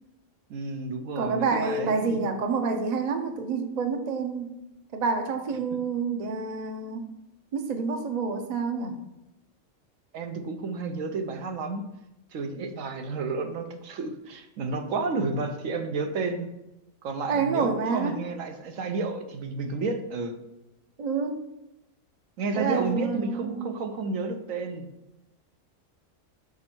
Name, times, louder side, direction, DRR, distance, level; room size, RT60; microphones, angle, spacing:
voice 1, 0.5-2.2 10.1-11.9 12.3-16.5 17.0-20.4 22.4-24.9, right 3 dB, 80° right, 6 dB, 1.1 m, -31 dB
voice 2, 1.2-4.5 4.9-7.1 7.5-9.0 17.3-18.2 21.0-21.4 22.5-23.8, right 4 dB, 40° right, 6 dB, 0.6 m, -28 dB
6.1 x 4.3 x 4.5 m, 0.93 s
omnidirectional pair, 1.4 m